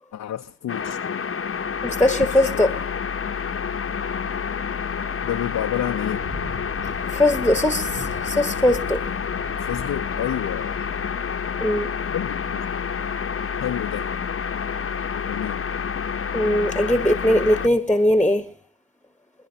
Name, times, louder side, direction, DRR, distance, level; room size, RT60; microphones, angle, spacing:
voice 1, 0.1-1.3 2.3-2.6 5.2-6.2 9.5-10.8 12.1-12.6 13.6-14.1 15.3-15.6, left 11 dB, 70° left, 0.7 m, -30 dB
sound 1, 0.7-17.7, left 6 dB, 40° left, 0.9 m, -28 dB
voice 2, 1.8-2.7 7.1-9.0 11.6-11.9 16.3-18.5, left 1 dB, 5° left, 1.3 m, -20 dB
Boat Water vehicle, 6.0-11.1, equal, 75° right, 5.6 m, -40 dB
25.5 x 10.5 x 2.9 m
supercardioid pair, 40°, 33 cm